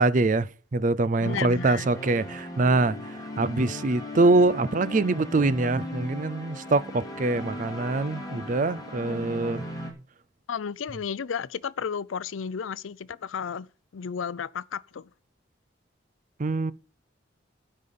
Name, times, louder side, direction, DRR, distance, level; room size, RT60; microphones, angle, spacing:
voice 1, 0.0-9.6 16.4-16.7, right 2 dB, 40° right, 0.5 m, -24 dB
voice 2, 1.2-1.9 10.5-13.7 13.9-15.1, left 7 dB, 80° left, 0.5 m, -33 dB
sound 1, 1.2-9.9, left 1 dB, 20° left, 2.6 m, -37 dB
12.0 x 5.5 x 6.8 m
head